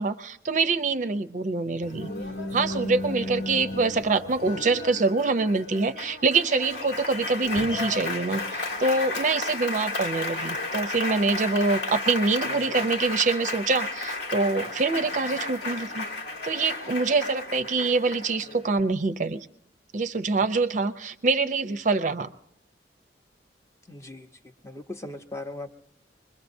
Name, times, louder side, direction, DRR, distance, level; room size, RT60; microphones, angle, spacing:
voice 1, 0.0-2.1 2.5-16.0 16.4-19.5 19.9-22.3, right 3 dB, 45° right, 10 dB, 0.5 m, -25 dB
Applause, 1.8-18.8, left 2 dB, 80° left, 1.5 m, -33 dB
voice 2, 23.9-24.3 24.6-25.7, left 2 dB, 15° left, 7 dB, 0.7 m, -38 dB
25.0 x 21.5 x 2.6 m, 0.76 s
head